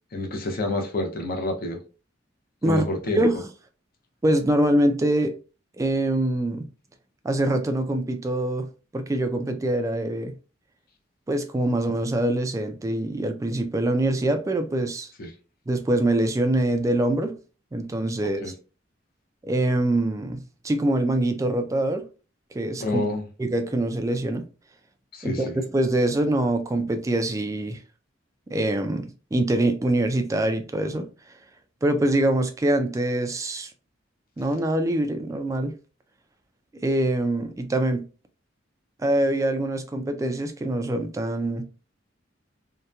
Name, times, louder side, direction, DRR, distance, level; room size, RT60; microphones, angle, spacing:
voice 1, 0.1-1.8 2.6-3.2 15.2-15.3 18.2-18.5 22.8-23.2 25.1-25.6, left 2 dB, 50° left, 0.6 m, -28 dB
voice 2, 4.2-5.4 5.8-6.7 7.2-8.7 8.9-10.4 11.3-15.1 15.7-17.4 17.7-18.5 19.4-22.0 22.5-23.0 23.4-24.4 25.2-27.8 28.5-31.1 31.8-33.7 34.4-35.7 36.8-38.0 39.0-41.6, right 1 dB, 15° right, 0.3 m, -24 dB
2.8 x 2.1 x 2.3 m
head